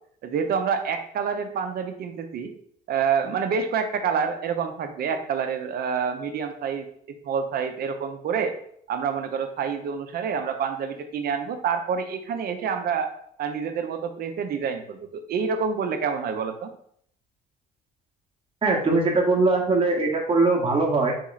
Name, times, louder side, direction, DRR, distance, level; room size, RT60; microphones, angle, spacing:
voice 1, 0.2-2.5 2.9-6.9 7.2-8.5 8.9-13.1 13.4-16.7, right 6 dB, 55° right, 7 dB, 0.7 m, -27 dB
voice 2, 18.6-21.1, right 3 dB, 30° right, -1 dB, 1.0 m, -21 dB
3.6 x 3.0 x 3.9 m, 0.65 s
supercardioid pair, 90°, 18 cm